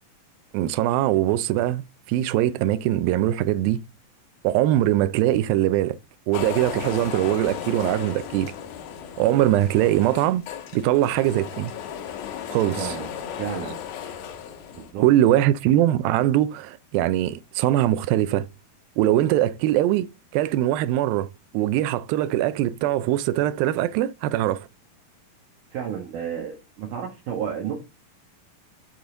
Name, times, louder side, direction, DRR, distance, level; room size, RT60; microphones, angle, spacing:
voice 1, 0.5-1.8 2.1-3.8 4.4-6.0 6.3-8.5 9.2-10.4 10.7-11.7 12.5-13.0 15.0-18.5 19.0-24.7, right 13 dB, 85° right, 2.3 m, -22 dB
sound 1, 6.3-14.9, left 9 dB, 80° left, 3.0 m, -35 dB
voice 2, 12.7-13.1 13.4-13.8 14.7-15.0 25.7-27.7, right 8 dB, 65° right, 2.6 m, -31 dB
12.0 x 4.0 x 3.8 m
omnidirectional pair, 4.3 m